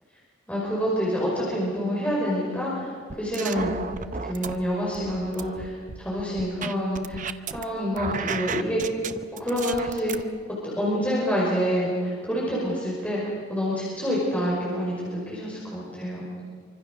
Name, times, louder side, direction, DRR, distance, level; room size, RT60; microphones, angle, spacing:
voice 1, 0.5-3.7 4.0-5.7 6.0-8.8 9.4-10.1 10.5-16.2, equal, 5° left, -6 dB, 5.5 m, -27 dB
sound 1, 3.1-4.5 4.9-7.6 7.9-10.2, right 5 dB, 35° right, 0.8 m, -33 dB
26.0 x 25.0 x 6.6 m, 2.1 s
head